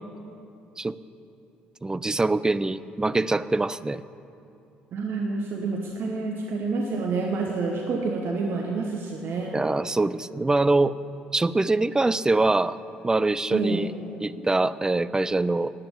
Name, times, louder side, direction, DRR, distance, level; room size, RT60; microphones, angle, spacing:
voice 1, 1.8-4.0 9.5-10.9 11.3-12.8 13.0-13.9 14.2-15.7, right 2 dB, 15° right, 17 dB, 0.4 m, -24 dB
voice 2, 4.9-9.6 13.5-13.9, right 4 dB, 50° right, 1 dB, 1.1 m, -28 dB
10.5 x 9.0 x 8.9 m, 2.7 s
figure-of-eight pair, 50°, 5 cm